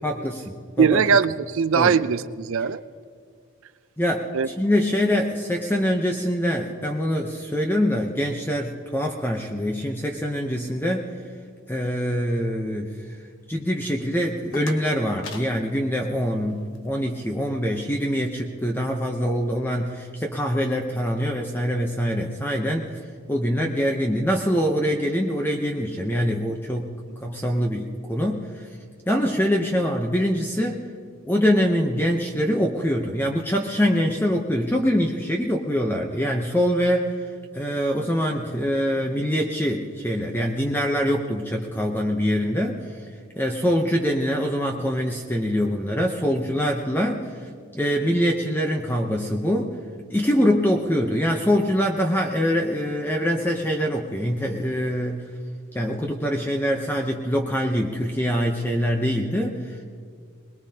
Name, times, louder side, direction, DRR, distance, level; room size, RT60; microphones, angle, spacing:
voice 1, 0.0-1.0 1.8-1.9 4.0-11.1 11.7-13.0 13.5-22.9 23.3-26.9 27.2-28.5 29.1-30.8 31.3-37.1 37.5-42.9 43.4-47.5 47.7-49.8 50.1-55.2 55.7-59.8, equal, 10° left, 1 dB, 0.7 m, -24 dB
voice 2, 0.8-2.8 4.3-4.5, right 6 dB, 70° right, 14 dB, 0.5 m, -20 dB
sound 1, 14.1-16.9, left 3 dB, 65° left, 1.3 m, -43 dB
22.0 x 21.0 x 2.9 m, 2.1 s
head